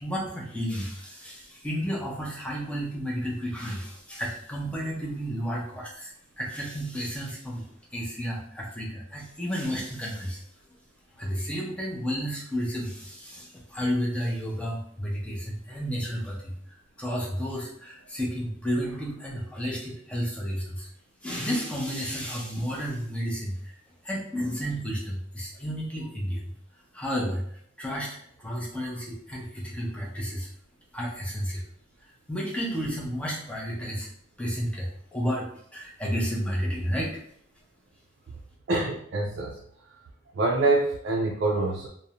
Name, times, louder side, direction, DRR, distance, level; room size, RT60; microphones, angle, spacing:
voice 1, 0.0-7.6 7.9-10.4 11.2-16.5 17.0-20.9 21.2-23.7 24.0-26.4 26.9-27.4 27.8-30.5 30.9-31.6 32.3-34.1 34.4-35.5 35.7-37.2, equal, 5° left, -4 dB, 0.6 m, -32 dB
voice 2, 38.7-39.5 40.4-41.9, right 2 dB, 60° right, -2 dB, 0.4 m, -25 dB
2.5 x 2.1 x 2.8 m, 0.66 s
head